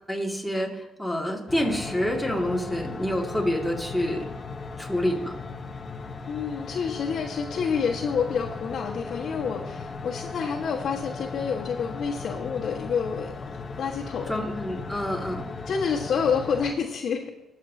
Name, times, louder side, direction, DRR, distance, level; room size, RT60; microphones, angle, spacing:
voice 1, 0.1-4.2 4.8-5.3 14.3-15.5, equal, ahead, -1 dB, 2.3 m, -27 dB
sound 1, 1.5-16.7, left 4 dB, 40° left, 0.9 m, -37 dB
voice 2, 6.3-13.3 13.8-14.3 15.7-17.3, left 6 dB, 65° left, -5 dB, 1.5 m, -28 dB
20.0 x 7.3 x 2.8 m, 0.97 s
cardioid pair, 90°, 0 cm